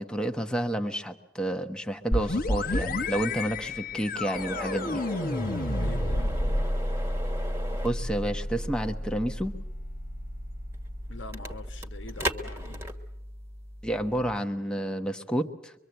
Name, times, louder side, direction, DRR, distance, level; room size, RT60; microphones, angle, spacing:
voice 1, 0.0-5.0 7.8-9.5 13.8-15.7, right 1 dB, 5° left, 1.1 m, -30 dB
sound 1, 2.1-11.7, left 1 dB, 45° left, 1.1 m, -31 dB
sound 2, 4.3-14.4, equal, 10° right, 1.5 m, -39 dB
voice 2, 5.7-6.4 11.1-12.9, left 2 dB, 60° left, 1.5 m, -44 dB
24.0 x 24.0 x 8.0 m
head